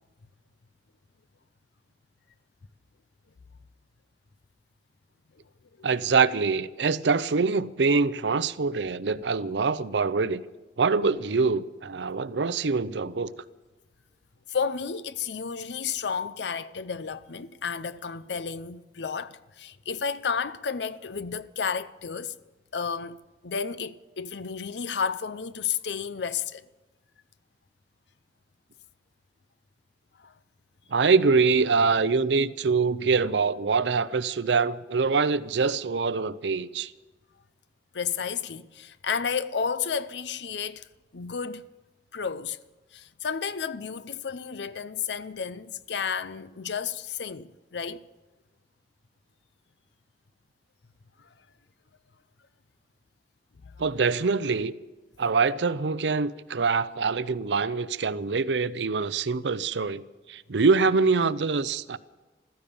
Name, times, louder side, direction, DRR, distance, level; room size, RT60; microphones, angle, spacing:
voice 1, 5.8-10.4 10.8-13.3 30.9-36.9 53.8-54.7 55.2-60.0 60.3-62.0, right 4 dB, 90° right, 0.6 m, -24 dB
voice 2, 14.5-22.4 22.7-23.2 23.4-26.6 30.2-30.3 37.9-41.6 42.1-42.6 42.9-48.0 51.2-51.3 53.6-53.7, left 6 dB, 80° left, 0.6 m, -32 dB
15.0 x 13.5 x 7.0 m
head